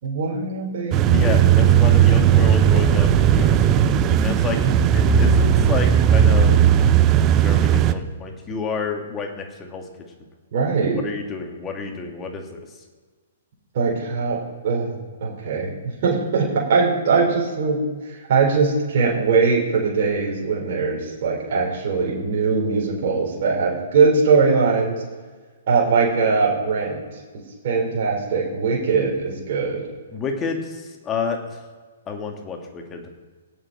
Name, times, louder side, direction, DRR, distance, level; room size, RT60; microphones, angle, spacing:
voice 1, 0.0-1.0 1.3-1.4 10.5-11.0 13.7-14.9 15.2-15.7 16.0-17.8 18.1-25.0 25.7-27.0 27.6-29.8, right 4 dB, 50° right, -3 dB, 4.3 m, -21 dB
sound 1, 0.9-7.9, right 9 dB, 30° right, 0.6 m, -16 dB
voice 2, 1.1-3.8 4.2-4.6 4.9-6.6 7.4-9.9 10.9-12.6 30.1-31.6 32.1-33.1, left 5 dB, 20° left, 3 dB, 2.1 m, -29 dB
17.5 x 7.0 x 4.3 m, 1.4 s
figure-of-eight pair, 120°, 0 cm